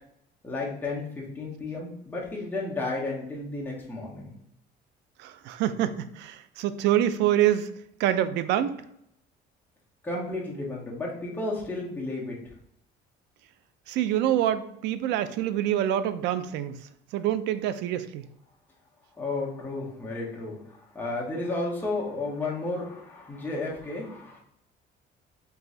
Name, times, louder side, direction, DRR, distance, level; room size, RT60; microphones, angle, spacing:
voice 1, 0.4-4.3 10.0-12.5 19.2-24.4, left 2 dB, 10° left, -4 dB, 1.2 m, -33 dB
voice 2, 5.2-7.7 8.0-8.8 13.9-16.8 17.1-18.3, right 11 dB, 80° right, 12 dB, 0.4 m, -26 dB
4.6 x 3.0 x 2.7 m, 0.74 s
cardioid pair, 130°, 18 cm